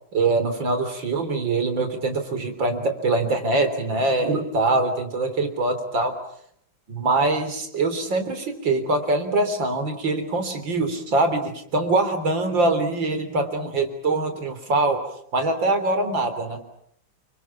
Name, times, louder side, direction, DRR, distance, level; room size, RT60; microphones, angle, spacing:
voice 1, 0.1-6.2 6.9-15.0 15.3-16.6, right 2 dB, 75° right, 8 dB, 4.3 m, -23 dB
29.5 x 25.0 x 7.4 m, 0.68 s
omnidirectional pair, 2.1 m